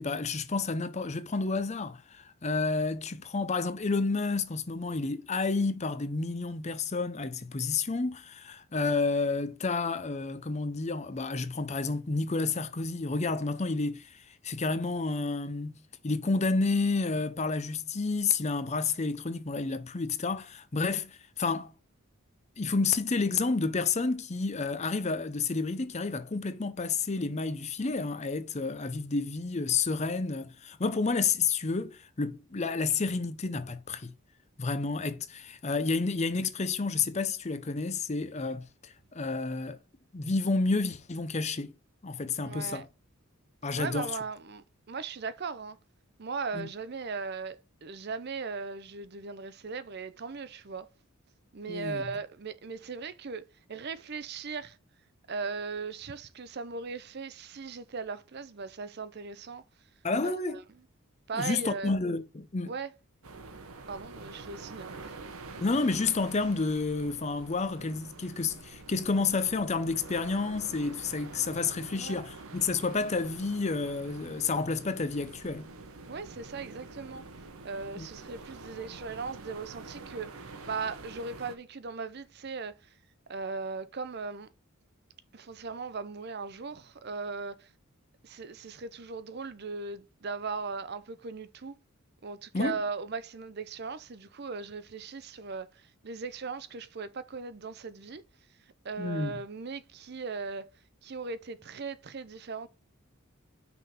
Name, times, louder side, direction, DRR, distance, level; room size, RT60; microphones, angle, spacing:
voice 1, 0.0-21.7 22.6-34.1 34.6-39.8 40.1-41.7 42.0-42.9 43.6-44.1 46.5-46.7 51.7-52.0 60.0-60.6 61.3-62.7 65.6-75.7 78.0-78.1 92.5-92.8 99.0-99.3, left 4 dB, 30° left, 0.6 m, -30 dB
voice 2, 42.4-42.8 43.8-45.8 46.2-50.9 51.5-54.8 55.3-59.6 60.2-60.6 61.3-62.0 62.6-62.9 63.9-65.2 71.9-72.2 76.1-77.2 77.6-80.3 80.6-82.7 83.3-84.5 85.3-87.7 88.2-91.7 92.2-98.2 98.8-100.7 101.0-102.7, right 4 dB, 50° right, 0.6 m, -38 dB
sound 1, 63.2-81.5, right 3 dB, 85° right, 1.1 m, -46 dB
5.9 x 3.7 x 5.7 m
head